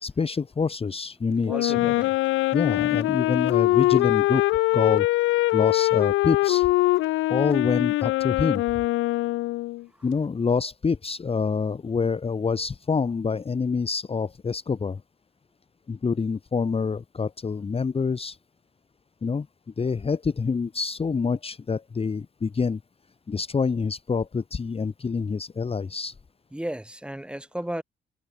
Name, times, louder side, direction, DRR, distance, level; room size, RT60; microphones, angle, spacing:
voice 1, 0.0-1.7 2.5-4.4 4.7-5.1 5.5-6.7 7.3-8.6 10.0-15.0 15.9-18.4 19.2-19.5 19.8-22.8 23.3-26.1, left 5 dB, 30° left, 1.2 m, -26 dB
Wind instrument woodwind instrument, 1.5-9.8, left 18 dB, 85° left, 0.5 m, -23 dB
voice 2, 1.5-2.6 9.9-10.1 26.5-27.8, right 1 dB, 5° right, 3.7 m, -35 dB
cardioid pair, 90°, 20 cm